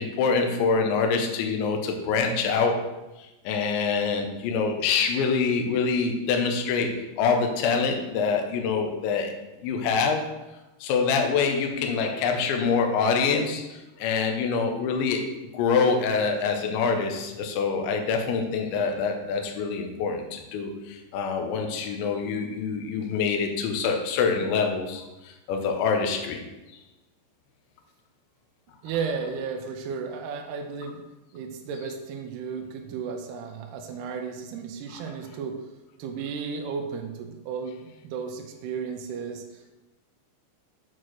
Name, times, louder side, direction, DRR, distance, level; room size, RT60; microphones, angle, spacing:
voice 1, 0.0-2.9 3.4-9.3 9.6-10.3 10.8-15.2 15.5-26.4, left 5 dB, 80° left, 3 dB, 3.3 m, -25 dB
voice 2, 28.8-31.0 31.3-35.6 36.0-39.8, right 5 dB, 75° right, 3 dB, 2.5 m, -34 dB
8.7 x 4.6 x 6.3 m, 1.0 s
omnidirectional pair, 5.3 m